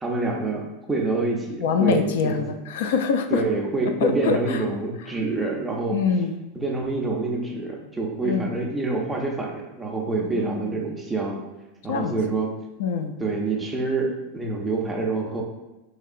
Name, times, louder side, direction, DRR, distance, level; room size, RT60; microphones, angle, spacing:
voice 1, 0.0-2.5 3.3-6.0 6.5-11.4 11.8-12.5 13.2-15.4, right 3 dB, 5° right, -1 dB, 0.4 m, -27 dB
voice 2, 1.6-3.4 4.0-4.6 5.9-6.3 8.2-8.5 10.2-10.7 11.9-12.2 12.8-13.1, left 5 dB, 65° left, 7 dB, 0.3 m, -24 dB
4.4 x 2.8 x 2.4 m, 1.0 s
supercardioid pair, 170°, 0 cm